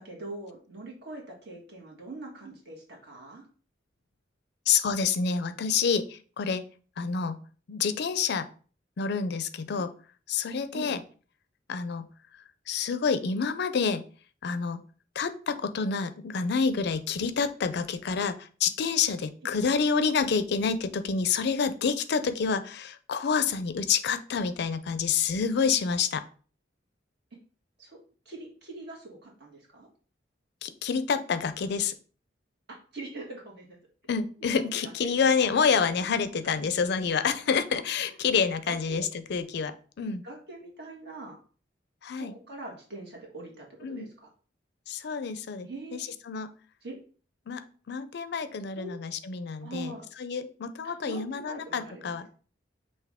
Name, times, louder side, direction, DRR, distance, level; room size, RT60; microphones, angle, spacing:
voice 1, 0.0-3.4 10.7-10.9 19.4-19.6 27.8-28.0 28.2-29.9 32.7-33.8 34.4-34.5 34.8-35.3 35.7-35.8 38.7-39.0 40.2-41.4 42.2-44.3 45.6-46.0 46.8-47.0 48.7-48.9 49.6-50.0 50.8-52.2, right 2 dB, 60° right, -1 dB, 1.6 m, -43 dB
voice 2, 4.7-6.6 7.0-7.4 7.7-8.5 9.0-9.9 10.3-11.0 11.7-12.1 12.7-14.0 14.4-14.8 15.2-26.2 30.6-31.9 34.1-40.2 42.0-42.3 43.8-44.1 44.9-46.0 46.3-46.5 47.5-47.6 47.9-49.9 50.2-52.3, left 5 dB, 65° left, 11 dB, 0.4 m, -28 dB
5.8 x 2.6 x 3.5 m, 0.40 s
head